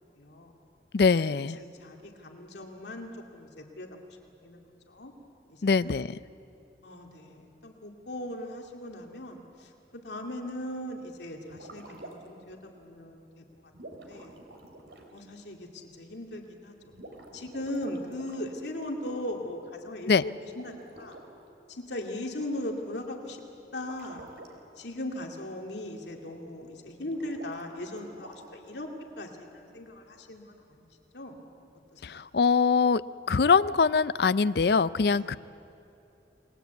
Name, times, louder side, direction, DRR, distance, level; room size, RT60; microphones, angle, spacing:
voice 1, 0.2-0.5 1.2-3.9 4.4-4.6 4.9-5.1 5.5-5.9 6.8-13.5 13.9-14.4 15.1-16.8 17.3-21.2 21.7-23.4 23.7-24.3 24.8-28.9 29.2-30.9 31.1-31.4 31.9-32.2 35.1-35.3, left 1 dB, 80° left, 2 dB, 2.4 m, -39 dB
voice 2, 0.9-1.6 5.6-6.1 20.1-20.2 32.0-33.0 33.3-35.4, left 5 dB, 60° left, 16 dB, 0.5 m, -23 dB
sound 1, 11.4-12.4 13.7-15.2 16.9-18.4 20.5-21.3 23.8-24.5 27.0-28.7, right 2 dB, 75° right, 3.2 m, -48 dB
28.0 x 20.5 x 8.2 m, 2.8 s
head